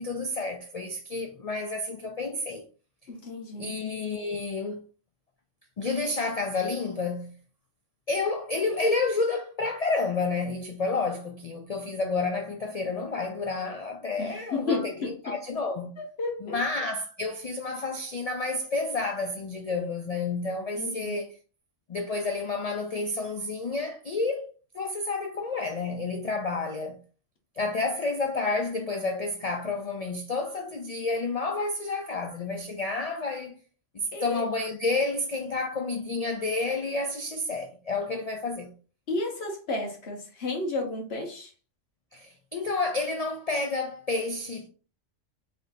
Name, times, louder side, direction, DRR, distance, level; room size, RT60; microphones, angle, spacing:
voice 1, 0.0-2.6 3.6-4.8 5.8-7.4 8.1-15.9 16.4-21.3 21.9-24.5 24.7-27.0 27.6-33.6 33.9-38.7 42.1-44.7, left 3 dB, 80° left, 0.3 m, -30 dB
voice 2, 3.1-3.8 14.2-15.3 16.0-16.6 20.7-21.2 34.1-34.4 39.1-41.5, left 3 dB, 55° left, 1.4 m, -32 dB
3.9 x 3.5 x 2.6 m
omnidirectional pair, 1.3 m